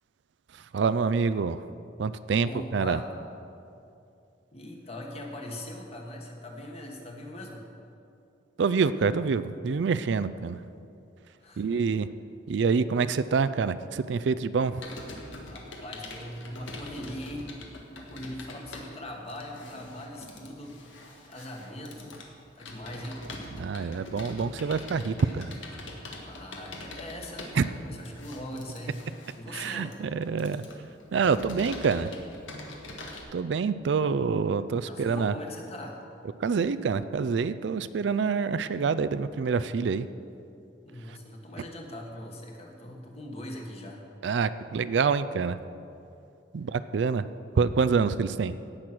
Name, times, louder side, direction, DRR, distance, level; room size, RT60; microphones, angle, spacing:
voice 1, 0.5-1.6 2.0-3.0 8.6-10.6 11.6-12.1 12.5-14.8 23.6-25.5 27.5-27.6 29.5-30.6 31.1-32.1 33.3-35.3 36.4-40.1 41.1-41.2 44.2-45.6 46.5-47.3 47.5-48.6, right 5 dB, 65° right, 13 dB, 0.4 m, -26 dB
voice 2, 2.4-3.1 4.5-7.7 11.4-11.8 15.5-17.6 17.9-20.8 21.2-22.2 22.5-23.2 26.2-29.0 29.4-30.0 34.0-34.1 34.9-36.0 40.8-44.0, left 1 dB, 35° left, 1 dB, 1.5 m, -41 dB
Computer keyboard, 14.8-33.2, left 2 dB, 90° left, 1.7 m, -44 dB
17.5 x 6.4 x 6.0 m, 2.6 s
head